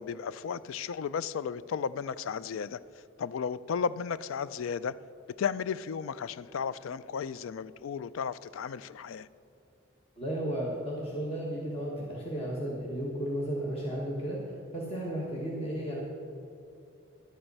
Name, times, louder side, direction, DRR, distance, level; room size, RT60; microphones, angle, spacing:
voice 1, 0.0-2.8 3.2-4.9 5.4-9.3, left 6 dB, 75° left, 17 dB, 0.3 m, -34 dB
voice 2, 10.2-16.0, right 1 dB, 30° left, -4 dB, 1.2 m, -34 dB
11.5 x 8.9 x 5.4 m, 2.6 s
head